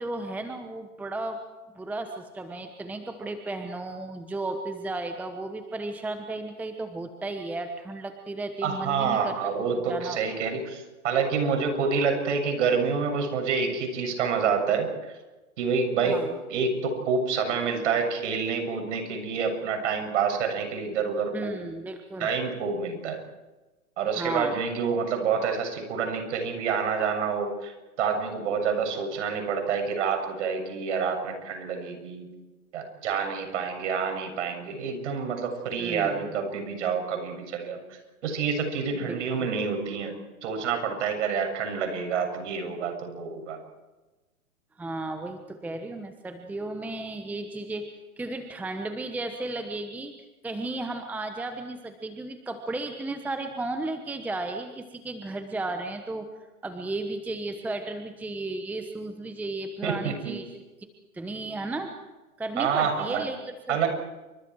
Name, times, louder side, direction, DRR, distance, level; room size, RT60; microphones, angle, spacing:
voice 1, 0.0-1.4 1.7-9.5 9.9-10.2 16.1-16.3 21.3-22.3 24.2-24.6 35.8-36.4 39.1-39.2 44.8-50.1 50.4-56.3 56.6-60.5 61.1-61.9 62.4-63.8, right 2 dB, 5° right, 7 dB, 1.1 m, -34 dB
voice 2, 8.6-15.2 15.6-16.2 16.5-21.6 22.2-23.2 24.0-32.3 32.7-40.1 40.4-43.6 59.8-60.4 62.6-63.2 63.7-63.9, right 5 dB, 55° right, 5 dB, 7.3 m, -28 dB
29.0 x 26.0 x 4.7 m, 1.1 s
hypercardioid pair, 130°, 44 cm